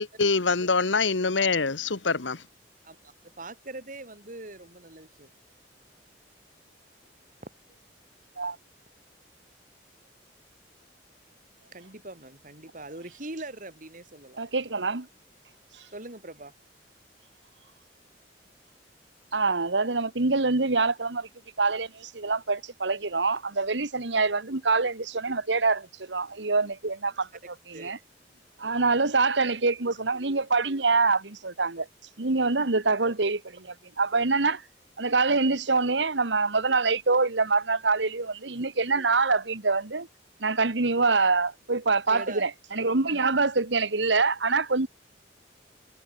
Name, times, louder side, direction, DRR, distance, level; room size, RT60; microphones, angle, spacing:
voice 1, 0.0-2.4, left 4 dB, 85° left, 1.4 m, -25 dB
voice 2, 2.8-5.3 11.7-14.4 15.9-16.5 27.7-27.9 28.6-28.8 32.5-32.6 42.1-42.4, right 2 dB, 45° right, 3.6 m, -42 dB
voice 3, 14.4-15.1 19.3-21.3 21.6-27.3 27.7-28.0 28.6-31.9 32.2-33.6 34.0-34.6 35.0-40.1 40.4-44.9, right 3 dB, 75° right, 1.6 m, -25 dB
head